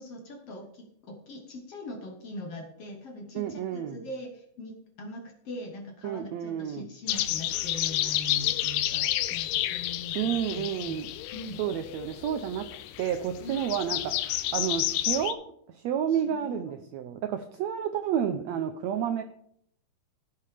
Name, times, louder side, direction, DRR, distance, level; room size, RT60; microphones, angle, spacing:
voice 1, 0.0-11.0 11.3-11.6 13.4-13.6 16.1-16.7, left 1 dB, 55° left, 3 dB, 1.9 m, -42 dB
voice 2, 3.3-4.0 6.0-6.8 10.1-11.1 11.6-12.7 13.0-15.4 15.7-19.2, right 9 dB, 85° right, 8 dB, 1.5 m, -30 dB
sound 1, 7.1-15.3, left 14 dB, 85° left, 2.3 m, -30 dB
15.0 x 6.7 x 5.0 m, 0.68 s
omnidirectional pair, 4.0 m